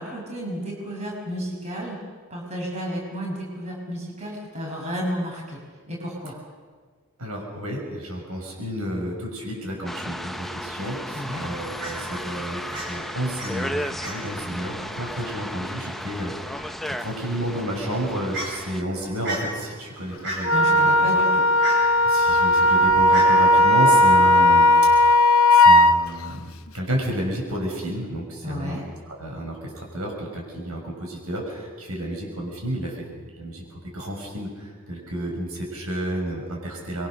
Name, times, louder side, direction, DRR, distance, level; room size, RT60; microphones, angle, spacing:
voice 1, 0.0-2.0 2.3-5.6 5.9-6.4 11.1-11.4 20.5-21.3 28.4-28.8, equal, 30° right, -1 dB, 5.9 m, -32 dB
voice 2, 7.2-21.2 22.0-24.7 25.5-28.8 29.1-37.1, equal, 80° right, 0 dB, 6.6 m, -31 dB
sound 1, 9.9-18.8, equal, ahead, 0.6 m, -34 dB
Fowl, 11.2-24.8, right 1 dB, 55° right, 7.5 m, -38 dB
Wind instrument woodwind instrument, 20.4-25.9, left 1 dB, 70° left, 1.0 m, -16 dB
25.0 x 23.5 x 6.6 m, 1.6 s
head